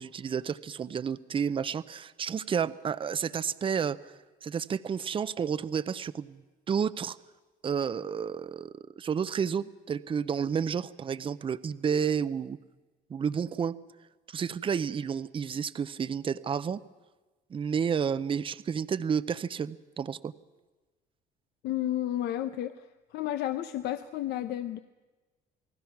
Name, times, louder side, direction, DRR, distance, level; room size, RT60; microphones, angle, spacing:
voice 1, 0.0-4.1 4.4-6.4 6.7-7.2 7.6-8.7 9.0-12.6 13.1-13.7 14.3-16.8 17.5-20.3, right 7 dB, 30° right, 16 dB, 0.6 m, -31 dB
voice 2, 21.6-22.8 23.1-24.8, left 12 dB, 80° left, 11 dB, 0.8 m, -32 dB
28.5 x 19.0 x 6.0 m, 1.2 s
cardioid pair, 110°, 17 cm